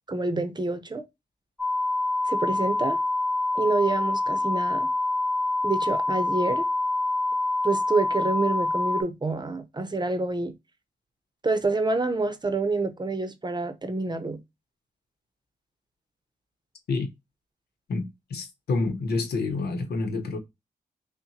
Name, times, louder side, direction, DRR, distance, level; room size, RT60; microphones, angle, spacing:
voice 1, 0.1-1.0 2.3-3.0 3.5-4.9 5.6-6.7 7.6-10.5 11.4-14.4, right 3 dB, 25° right, 0.7 m, -27 dB
sound 1, 1.6-9.0, left 2 dB, 5° left, 0.8 m, -26 dB
voice 2, 17.9-20.4, left 3 dB, 90° left, 0.8 m, -28 dB
5.5 x 2.1 x 2.8 m
cardioid pair, 55°, 16 cm